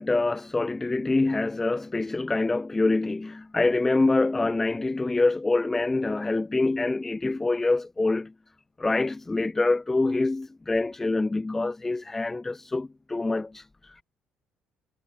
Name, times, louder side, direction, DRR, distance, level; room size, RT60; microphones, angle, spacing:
voice 1, 0.0-8.3 8.8-14.0, left 2 dB, 10° left, 0.7 m, -25 dB
cardioid pair, 140°, 3 cm